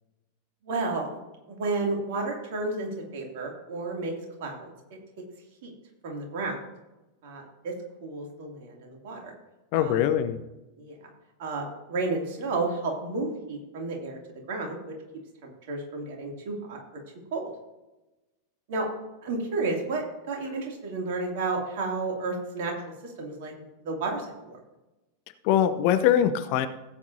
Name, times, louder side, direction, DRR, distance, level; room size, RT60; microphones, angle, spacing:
voice 1, 0.6-1.1 1.5-4.1 4.4-5.0 5.6-5.7 6.0-6.6 7.2-7.7 8.0-9.3 9.7-10.0 10.8-11.0 11.4-14.2 14.5-14.8 15.7-16.8 17.3-17.5 18.7-18.9 19.2-22.7 23.0-23.5 23.8-24.6, right 3 dB, 50° right, 0 dB, 2.6 m, -31 dB
voice 2, 9.7-10.4 25.4-26.7, left 10 dB, 45° left, 11 dB, 0.7 m, -22 dB
16.0 x 8.6 x 2.7 m, 1.0 s
figure-of-eight pair, 90°, 0 cm